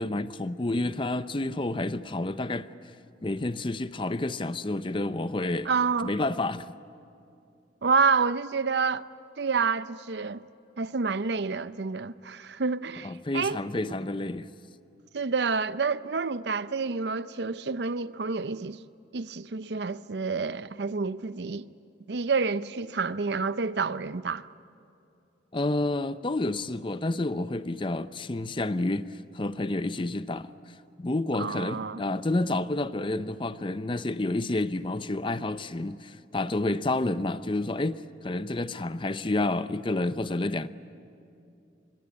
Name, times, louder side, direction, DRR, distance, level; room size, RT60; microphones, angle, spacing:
voice 1, 0.0-2.7 3.2-5.7 6.0-6.7 13.0-14.5 25.5-30.5 31.0-40.7, left 2 dB, 30° left, 0.6 m, -29 dB
voice 2, 5.7-6.1 7.8-9.1 9.4-10.4 10.8-13.6 13.9-14.0 15.1-18.8 19.1-21.7 22.1-24.5 31.4-32.0, right 5 dB, 70° right, 0.6 m, -28 dB
25.0 x 23.0 x 9.6 m
head